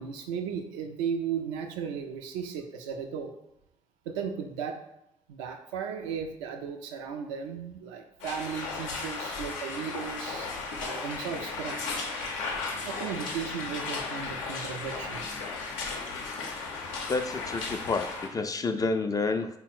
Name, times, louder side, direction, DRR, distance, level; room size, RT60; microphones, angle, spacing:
voice 1, 0.0-3.3 4.1-4.8 5.3-11.8 12.8-15.2, right 7 dB, 75° right, 5 dB, 0.4 m, -35 dB
sound 1, 8.2-18.3, left 4 dB, 75° left, 0.5 m, -35 dB
voice 2, 17.1-19.5, left 3 dB, 20° left, 7 dB, 0.3 m, -29 dB
3.6 x 2.0 x 4.1 m, 0.85 s
figure-of-eight pair, 45°, 16 cm